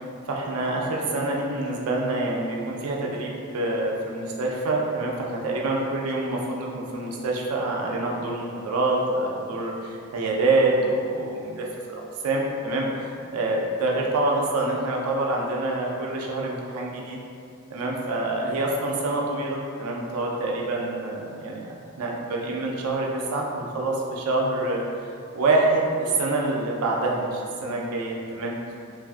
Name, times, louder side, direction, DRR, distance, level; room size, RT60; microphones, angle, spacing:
voice 1, 0.3-17.2 17.7-21.7 22.0-24.8 25.3-28.5, right 2 dB, 80° right, -2 dB, 0.4 m, -26 dB
2.5 x 2.4 x 2.3 m, 2.4 s
head